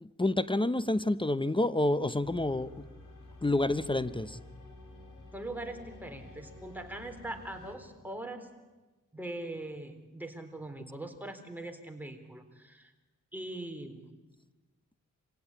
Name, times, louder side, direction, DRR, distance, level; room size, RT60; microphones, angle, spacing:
voice 1, 0.0-2.8 3.4-4.4, left 2 dB, 15° left, 15 dB, 0.9 m, -28 dB
sound 1, 2.2-7.7, left 2 dB, 75° left, 4.8 m, -51 dB
voice 2, 5.3-8.5 9.1-12.9 13.3-14.1, right 1 dB, 5° right, 4 dB, 3.6 m, -41 dB
25.5 x 16.5 x 9.7 m, 1.2 s
cardioid pair, 50°, 31 cm